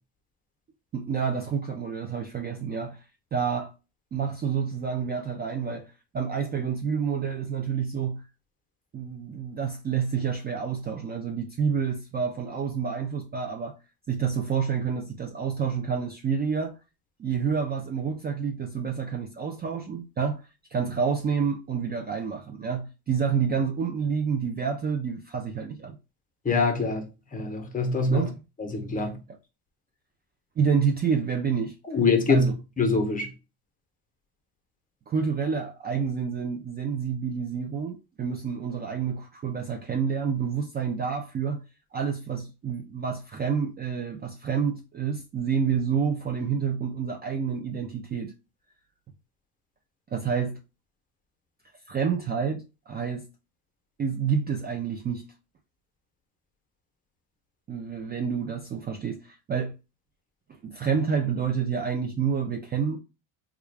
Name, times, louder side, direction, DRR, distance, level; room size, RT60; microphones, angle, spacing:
voice 1, 0.9-3.0 3.3-3.7 4.1-8.2 8.9-13.8 14.1-16.8 17.2-26.0 28.1-28.4 29.0-29.1 30.6-31.8 32.3-32.5 35.1-41.6 41.9-48.3 50.1-50.6 51.9-53.3 54.0-55.2 57.7-59.7 60.6-63.0, right 6 dB, 25° right, 0.4 m, -28 dB
voice 2, 26.4-28.2 28.6-29.2 31.8-32.5 32.8-33.3, left 4 dB, 20° left, 0.9 m, -24 dB
3.4 x 2.4 x 3.3 m
cardioid pair, 115°, 40 cm